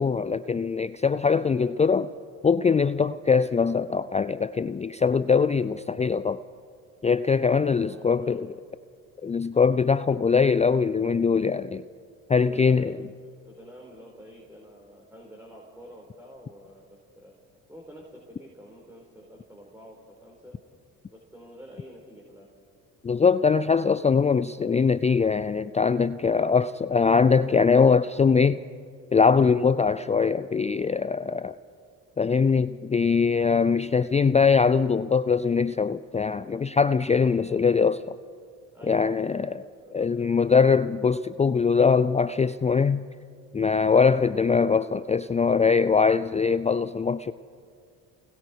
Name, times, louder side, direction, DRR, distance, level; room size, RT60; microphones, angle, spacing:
voice 1, 0.0-2.1 2.4-6.4 7.0-8.5 9.2-11.8 12.3-12.9 23.0-28.6 29.1-31.6 32.2-38.2 38.9-39.6 39.9-43.0 43.5-47.3, left 5 dB, 20° left, 15 dB, 0.4 m, -22 dB
voice 2, 7.9-8.6 12.3-12.9 13.2-17.4 17.7-20.0 20.2-20.6 21.1-22.5 38.7-40.4, equal, 5° right, -2 dB, 4.6 m, -48 dB
30.0 x 20.5 x 4.6 m, 2.2 s
hypercardioid pair, 60°, 40 cm